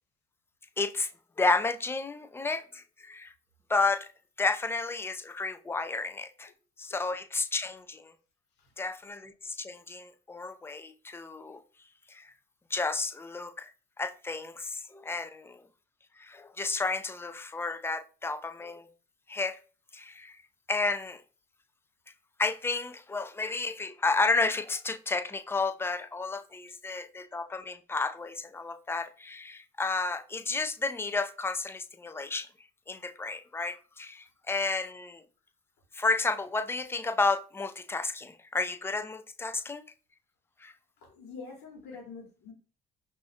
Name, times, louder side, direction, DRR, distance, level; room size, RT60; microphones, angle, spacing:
voice 1, 0.8-1.1 1.4-3.3 3.7-4.1 4.4-6.5 6.8-8.1 8.8-11.6 12.1-12.3 12.7-13.7 14.0-15.6 16.2-18.9 19.3-19.6 19.9-20.4 20.7-21.2 22.4-32.5 32.9-35.2 35.9-39.8 40.6-40.7, left 3 dB, 15° left, 0.3 m, -32 dB
voice 2, 41.0-42.5, left 4 dB, 75° left, 1.3 m, -45 dB
2.5 x 2.4 x 4.1 m
cardioid pair, 110°, 17 cm